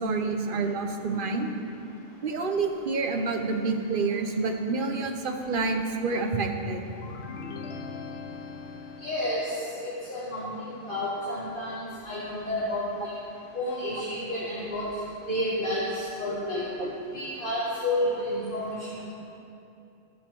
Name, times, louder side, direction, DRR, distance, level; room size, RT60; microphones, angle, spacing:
voice 1, 0.0-1.5 2.2-6.8 16.8-16.9, right 3 dB, 50° right, 4 dB, 0.9 m, -28 dB
sound 1, 7.0-9.8, left 4 dB, 65° left, 0.9 m, -40 dB
voice 2, 9.0-9.5 9.8-13.1 13.5-14.9 15.3-16.6 17.1-19.0, left 1 dB, 45° left, -10 dB, 1.9 m, -30 dB
12.0 x 6.4 x 6.0 m, 2.7 s
omnidirectional pair, 1.2 m